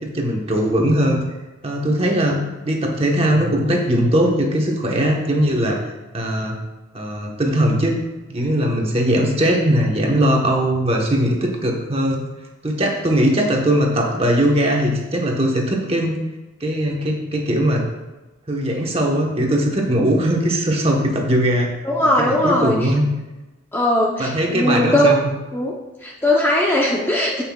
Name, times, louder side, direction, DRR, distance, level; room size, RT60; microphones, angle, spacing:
voice 1, 0.0-1.2 1.6-5.8 6.1-6.6 6.9-8.0 8.3-12.2 12.6-16.2 16.6-17.9 18.5-21.7 22.0-23.1 24.2-25.2, right 1 dB, 25° right, 0 dB, 1.2 m, -19 dB
voice 2, 21.8-22.8 23.7-25.1 25.5-25.7 26.0-27.4, left 1 dB, 10° left, -3 dB, 0.7 m, -19 dB
16.5 x 5.7 x 2.4 m, 1.1 s
head